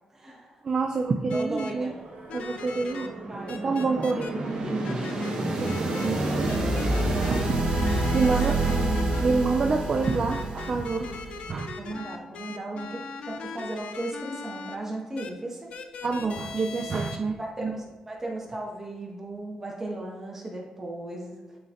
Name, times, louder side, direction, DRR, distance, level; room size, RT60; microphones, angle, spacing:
voice 1, 0.1-0.6 1.3-1.9 3.3-3.6 6.1-6.5 8.2-8.4 8.6-9.1 11.8-13.0 13.3-15.7 17.4-21.6, right 1 dB, 15° right, -2 dB, 1.2 m, -36 dB
voice 2, 0.6-1.9 2.3-3.1 3.6-5.1 5.5-6.7 7.2-7.6 8.1-8.5 9.2-11.2 11.5-11.8 16.0-17.8, right 4 dB, 35° right, 3 dB, 0.4 m, -28 dB
sound 1, 1.3-1.7 2.3-3.1 3.5-4.3 4.8-5.3 5.7-6.1 6.5-7.4 7.7-9.2 10.0-14.8 15.2-15.3 15.7-17.2, left 5 dB, 70° left, 0.5 m, -40 dB
sound 2, 1.7-7.1, right 3 dB, 75° right, 1.1 m, -46 dB
sound 3, 2.8-11.5, right 2 dB, 50° right, 1.3 m, -28 dB
9.5 x 4.0 x 2.5 m, 1.2 s
wide cardioid pair, 160°, 2 cm